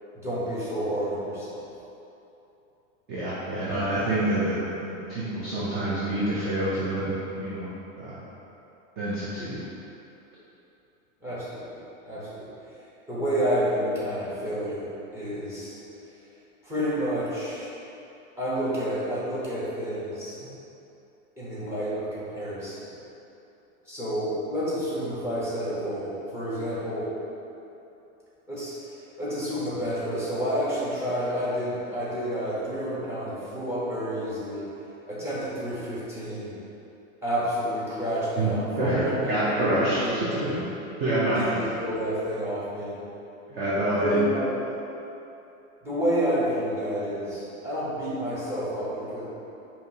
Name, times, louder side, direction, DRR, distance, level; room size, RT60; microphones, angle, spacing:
voice 1, 0.1-1.6 11.2-11.8 12.0-12.5 13.1-15.7 16.6-17.7 18.4-20.4 21.4-22.9 23.9-27.1 28.5-28.7 29.2-34.7 35.1-36.5 37.2-40.6 41.3-43.0 44.0-44.5 45.8-49.2, equal, 5° right, -10 dB, 1.1 m, -29 dB
voice 2, 3.1-8.2 9.0-9.6 20.4-20.5 38.4-40.7 41.0-41.7 43.5-44.2, right 1 dB, 25° right, -9 dB, 0.5 m, -27 dB
5.0 x 2.8 x 2.8 m, 2.9 s
supercardioid pair, 140°, 40 cm